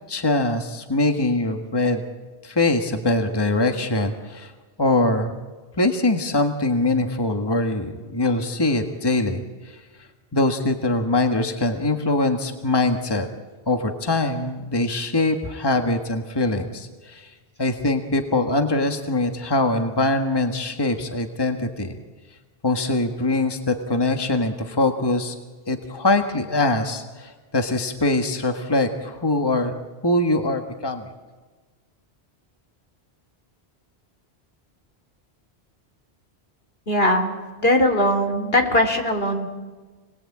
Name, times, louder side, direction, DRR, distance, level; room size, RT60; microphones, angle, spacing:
voice 1, 0.1-2.0 2.4-4.5 4.8-5.4 5.8-13.3 13.7-17.3 17.6-21.9 22.6-25.3 25.7-29.7 30.0-31.1, left 2 dB, 25° left, 5 dB, 1.6 m, -23 dB
voice 2, 36.9-37.3 37.6-39.4, left 1 dB, 65° left, 5 dB, 3.8 m, -20 dB
29.5 x 20.5 x 8.6 m, 1.3 s
omnidirectional pair, 1.1 m